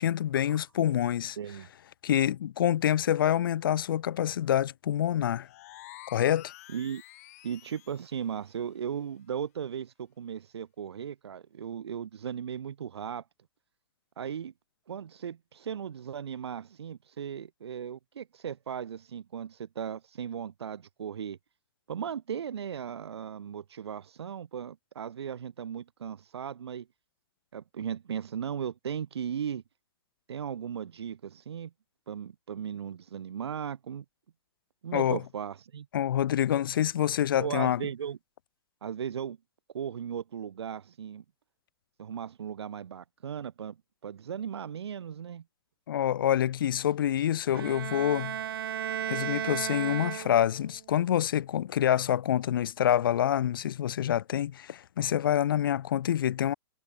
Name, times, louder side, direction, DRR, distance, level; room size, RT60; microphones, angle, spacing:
voice 1, 0.0-1.4 2.0-5.5 6.1-6.5 34.9-35.2 35.9-37.8 45.9-48.4 49.1-56.5, left 10 dB, 55° left, 0.9 m, -26 dB
voice 2, 1.4-1.7 6.7-7.0 7.4-13.2 14.2-14.5 14.9-21.4 21.9-26.9 27.5-29.6 30.3-31.7 32.1-34.0 34.8-35.9 37.4-38.2 38.8-39.4 39.7-41.2 42.0-43.8 44.0-45.4, right 8 dB, 85° right, 2.9 m, -37 dB
sound 1, 5.4-8.1, left 16 dB, 35° left, 2.2 m, -49 dB
Bowed string instrument, 47.5-50.7, right 10 dB, 60° right, 0.9 m, -34 dB
hypercardioid pair, 175°, 13 cm